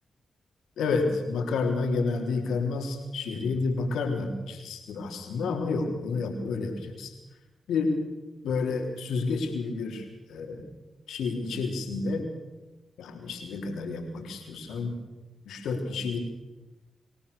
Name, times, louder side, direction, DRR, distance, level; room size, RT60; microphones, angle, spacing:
voice 1, 0.8-7.1 7.7-8.0 8.4-10.7 11.1-12.3 13.0-15.0 15.5-16.2, left 4 dB, 85° left, 3 dB, 3.6 m, -30 dB
25.0 x 17.0 x 6.9 m, 1.1 s
supercardioid pair, 45°, 0 cm